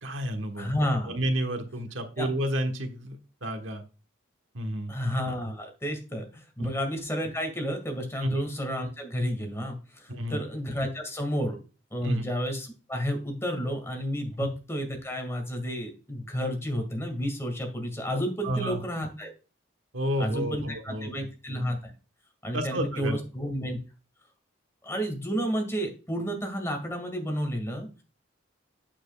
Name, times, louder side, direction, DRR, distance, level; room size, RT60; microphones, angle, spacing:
voice 1, 0.0-0.7 1.1-3.8 4.5-4.9 6.6-6.7 8.2-8.4 10.1-10.4 12.0-12.3 14.4-14.5 18.4-18.8 19.9-21.1 22.5-23.2, equal, 80° right, 6 dB, 1.3 m, -30 dB
voice 2, 0.6-1.2 2.2-2.3 4.9-11.6 11.9-19.3 20.2-21.9 22.4-23.8 24.8-27.9, equal, 15° left, 4 dB, 2.1 m, -31 dB
8.7 x 7.7 x 2.4 m, 0.33 s
head